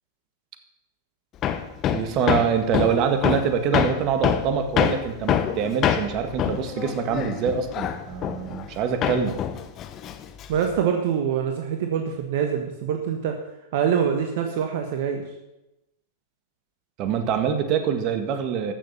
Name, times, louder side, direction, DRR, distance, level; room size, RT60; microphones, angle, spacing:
Hammer, 1.4-8.8 9.0-10.8, left 9 dB, 35° left, 1.1 m, -25 dB
voice 1, 1.9-9.4 17.0-18.7, right 7 dB, 45° right, 7 dB, 1.8 m, -25 dB
voice 2, 10.5-13.4 13.7-15.2, right 8 dB, 65° right, 5 dB, 1.3 m, -24 dB
14.0 x 6.9 x 6.9 m, 0.93 s
hypercardioid pair, 105°, 0 cm